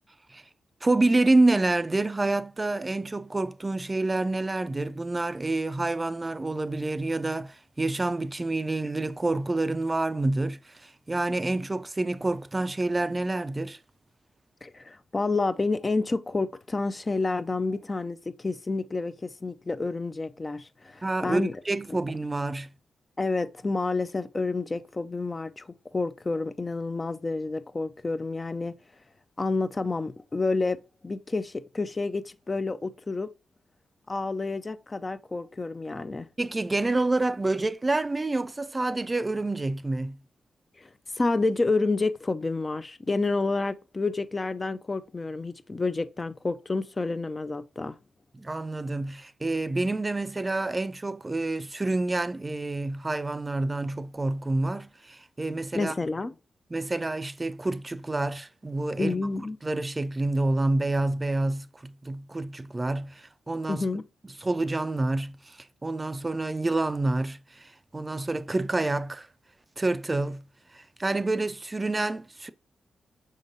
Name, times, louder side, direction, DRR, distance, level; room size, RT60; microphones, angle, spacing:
voice 1, 0.8-13.8 21.0-22.7 36.4-40.2 48.3-55.9 56.7-59.2 59.6-63.9 64.4-69.3 69.8-72.5, right 2 dB, 30° right, 0.3 m, -28 dB
voice 2, 14.6-21.6 23.2-28.7 29.4-33.3 34.1-36.3 40.8-48.0 55.7-56.3 59.0-59.6 63.7-64.0, left 3 dB, 35° left, 0.4 m, -29 dB
5.2 x 3.8 x 2.6 m
supercardioid pair, 40°, 0 cm